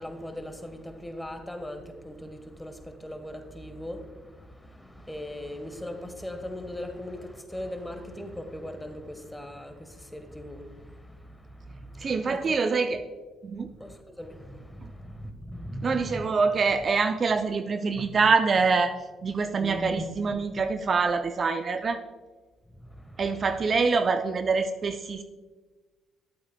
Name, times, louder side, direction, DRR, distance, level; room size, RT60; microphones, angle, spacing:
voice 1, 0.0-13.0 13.7-16.3 17.9-18.1 19.3-20.7 22.7-23.5, equal, 10° left, 1.2 m, -40 dB
voice 2, 12.0-13.0 13.4-13.7 15.8-18.9 19.2-22.0 23.2-25.2, right 4 dB, 45° right, 0.4 m, -25 dB
11.5 x 8.1 x 2.2 m
hypercardioid pair, 55°, 0 cm